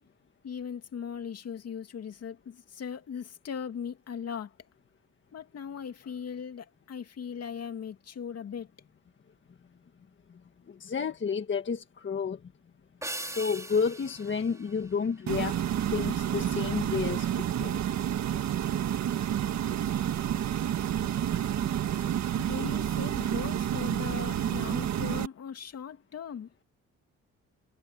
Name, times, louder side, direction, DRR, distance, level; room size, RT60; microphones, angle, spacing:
voice 1, 0.4-4.5 5.3-8.7 22.4-26.5, left 7 dB, 55° left, 2.6 m, -39 dB
voice 2, 10.7-12.4 13.2-17.8, left 6 dB, 40° left, 1.7 m, -31 dB
sound 1, 13.0-15.6, right 1 dB, 10° right, 4.4 m, -41 dB
sound 2, 15.3-25.3, right 10 dB, 65° right, 1.6 m, -29 dB
cardioid pair, 90°, 30 cm